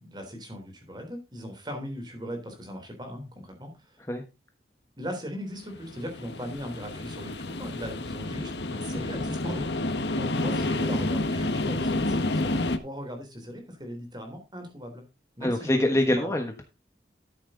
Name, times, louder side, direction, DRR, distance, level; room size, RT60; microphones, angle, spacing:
voice 1, 0.0-4.0 5.0-15.0 15.4-16.4, equal, 25° right, 4 dB, 3.6 m, -39 dB
sound 1, 5.8-12.8, left 2 dB, 85° left, 1.3 m, -29 dB
voice 2, 15.4-16.6, left 1 dB, 15° left, 5 dB, 1.2 m, -24 dB
13.0 x 7.2 x 3.8 m, 0.27 s
head